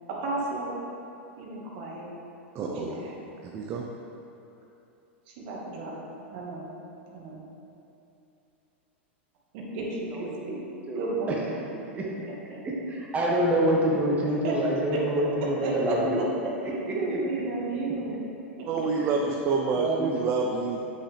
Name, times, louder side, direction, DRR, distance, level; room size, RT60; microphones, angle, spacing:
voice 1, 0.2-0.7 1.4-2.1 2.6-3.2 5.3-6.7 7.1-7.4 9.5-10.6 11.0-11.5 12.2-12.6 14.4-14.5 14.9-15.0 15.4-16.3 16.6-18.2 18.6-18.7, right 3 dB, 55° right, -3 dB, 1.6 m, -34 dB
voice 2, 2.5-2.9 3.4-3.9 18.7-20.8, right 4 dB, 40° right, 1 dB, 0.6 m, -28 dB
voice 3, 12.6-16.2 16.9-17.2 18.9-19.1 19.8-20.1, right 1 dB, 20° right, -3 dB, 1.4 m, -26 dB
8.0 x 6.1 x 3.3 m, 2.8 s
hypercardioid pair, 105°, 7 cm